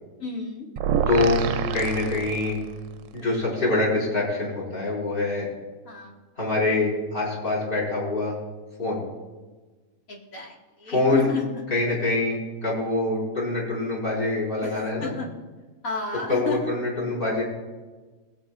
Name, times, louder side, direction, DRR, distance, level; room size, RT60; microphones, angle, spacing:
voice 1, 0.2-0.7 5.9-6.1 10.1-10.5 10.8-11.4 14.6-15.3 15.8-16.6, left 3 dB, 75° left, -2 dB, 2.3 m, -32 dB
sound 1, 0.8-2.9, right 6 dB, 70° right, 0.9 m, -27 dB
voice 2, 1.1-2.6 3.1-5.5 6.4-8.4 8.8-9.0 10.9-11.3 11.7-15.1 16.3-17.4, left 2 dB, 40° left, -4 dB, 4.7 m, -25 dB
22.5 x 8.3 x 2.4 m, 1.3 s
omnidirectional pair, 1.5 m